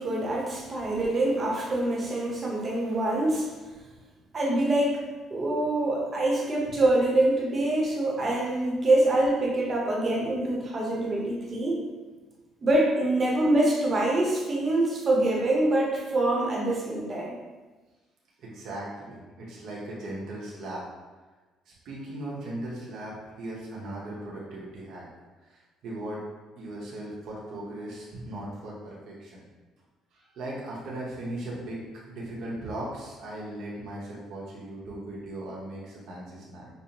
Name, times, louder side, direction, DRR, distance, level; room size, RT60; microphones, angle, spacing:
voice 1, 0.0-3.5 4.3-5.0 5.3-11.8 12.6-17.4, right 1 dB, 30° right, -2 dB, 0.8 m, -25 dB
voice 2, 18.4-20.8 21.8-25.1 25.4-26.2 26.6-29.5 30.1-36.7, right 1 dB, 65° right, -5 dB, 0.8 m, -38 dB
5.2 x 2.0 x 2.8 m, 1.3 s
cardioid pair, 130°, 0 cm